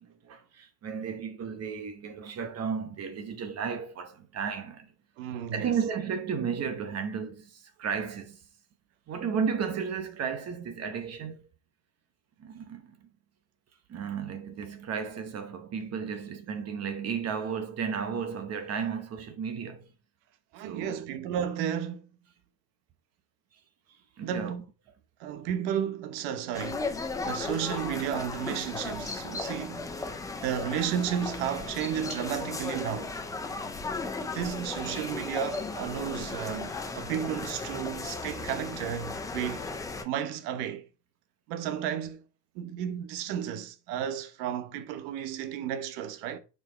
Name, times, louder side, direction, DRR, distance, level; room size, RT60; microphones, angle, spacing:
voice 1, 0.0-4.9 5.5-8.4 9.1-11.5 12.4-13.0 13.9-19.8 20.6-21.0 24.2-24.5, right 6 dB, 30° right, 0.9 m, -33 dB
voice 2, 5.2-5.8 20.5-22.1 24.2-24.6 25.2-27.0 27.2-29.9 30.4-33.2 34.2-39.7 40.0-40.8 41.5-42.2 42.5-46.4, right 9 dB, 80° right, 1.1 m, -33 dB
sound 1, 26.5-40.0, left 3 dB, 10° left, 0.3 m, -36 dB
6.8 x 4.7 x 4.3 m
cardioid pair, 145°, 47 cm